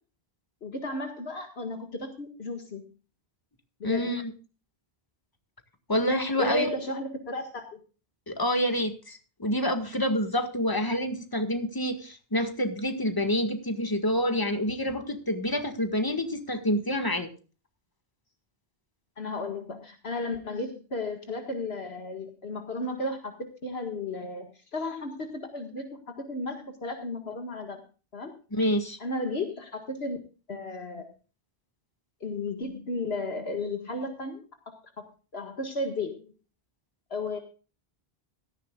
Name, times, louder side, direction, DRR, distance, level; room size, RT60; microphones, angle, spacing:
voice 1, 0.6-2.8 3.8-4.2 6.4-7.8 19.2-25.9 26.2-27.8 28.1-28.3 29.0-30.2 30.5-31.1 32.2-34.4 35.0-35.1 35.3-36.3 37.1-37.4, left 2 dB, 80° left, 5 dB, 2.1 m, -34 dB
voice 2, 3.8-4.3 5.9-6.7 8.3-17.3 28.6-29.0, equal, 20° left, 7 dB, 1.8 m, -27 dB
17.0 x 14.0 x 2.4 m, 0.35 s
omnidirectional pair, 1.0 m